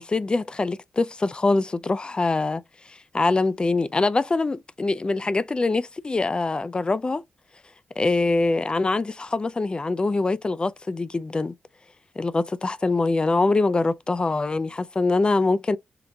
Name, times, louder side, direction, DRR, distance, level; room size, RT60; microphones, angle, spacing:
voice 1, 0.0-7.2 8.0-11.6 12.2-15.8, left 3 dB, 30° left, 0.3 m, -24 dB
3.7 x 2.2 x 2.6 m
cardioid pair, 75°, 3 cm